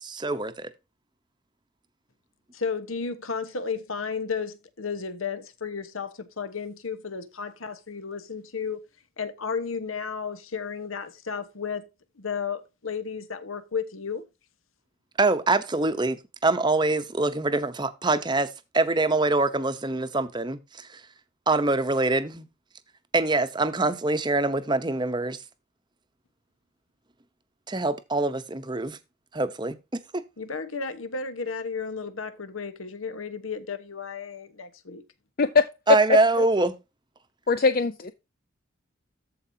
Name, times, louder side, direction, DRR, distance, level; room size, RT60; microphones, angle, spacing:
voice 1, 0.0-0.7 15.2-21.0 21.5-22.4 23.1-25.4 27.7-29.0 29.3-30.2 35.9-36.7, right 2 dB, 20° right, 0.8 m, -24 dB
voice 2, 2.5-8.8 9.2-11.9 12.2-14.2 30.4-35.0, left 5 dB, 80° left, 1.3 m, -33 dB
voice 3, 35.4-35.7 37.5-38.1, left 4 dB, 45° left, 0.5 m, -21 dB
14.0 x 4.8 x 2.8 m
head